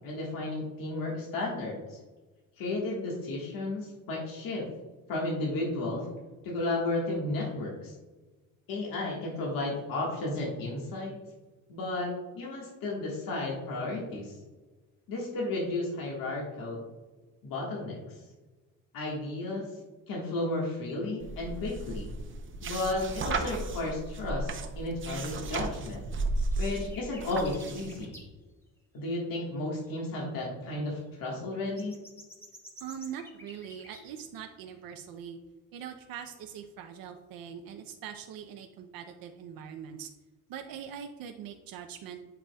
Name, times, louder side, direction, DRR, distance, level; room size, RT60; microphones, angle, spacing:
voice 1, 0.0-2.0 2.6-4.7 5.1-6.1 6.4-7.9 8.7-11.1 11.7-14.4 15.1-16.8 17.4-18.1 18.9-19.7 20.1-22.1 22.6-26.0 26.6-28.1 28.9-32.0, left 2 dB, 80° left, -3 dB, 1.6 m, -33 dB
sound 1, 21.2-28.0, right 3 dB, 35° right, 0.6 m, -34 dB
sound 2, 25.7-25.9 26.4-28.2 28.6-28.7 29.2-29.3 29.5-29.6 29.8-30.1 31.0-34.0, equal, 5° left, 1.3 m, -51 dB
voice 2, 32.8-35.4 35.7-40.1 40.5-42.3, right 8 dB, 90° right, 5 dB, 0.6 m, -42 dB
10.0 x 4.8 x 2.3 m, 1.2 s
cardioid pair, 135°, 34 cm